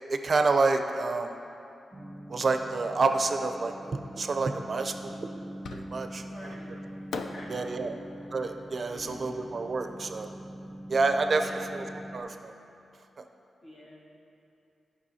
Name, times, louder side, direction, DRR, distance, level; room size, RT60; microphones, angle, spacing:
voice 1, 0.1-1.3 2.3-3.7 4.1-5.3 5.7-6.5 7.5-8.0 8.3-10.3 10.9-11.8 12.1-12.5, right 3 dB, 45° right, 6 dB, 0.4 m, -28 dB
sound 1, 1.9-12.2, equal, ahead, 1.4 m, -43 dB
Fireworks, 5.6-6.3 7.1-10.2, left 4 dB, 85° left, 0.4 m, -43 dB
voice 2, 6.2-6.8 7.2-7.8 8.9-9.4 11.2-12.1 13.6-14.0, left 1 dB, 55° left, -5 dB, 1.9 m, -48 dB
14.5 x 5.3 x 2.7 m, 2.7 s
wide cardioid pair, 110°, 0 cm